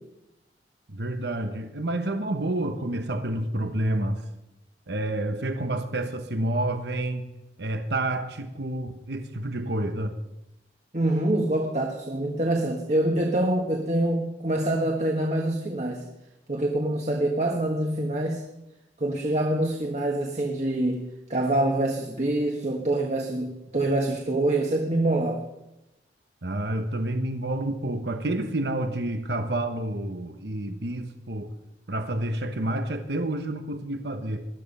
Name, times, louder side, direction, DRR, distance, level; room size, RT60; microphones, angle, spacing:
voice 1, 0.9-4.2 4.9-7.3 7.6-10.2 26.4-31.5 31.9-34.5, right 1 dB, 65° right, 1.1 m, -29 dB
voice 2, 10.9-16.0 16.5-18.4 19.0-21.0 21.3-25.4, right 1 dB, 40° right, 1.5 m, -25 dB
20.0 x 12.5 x 5.5 m
head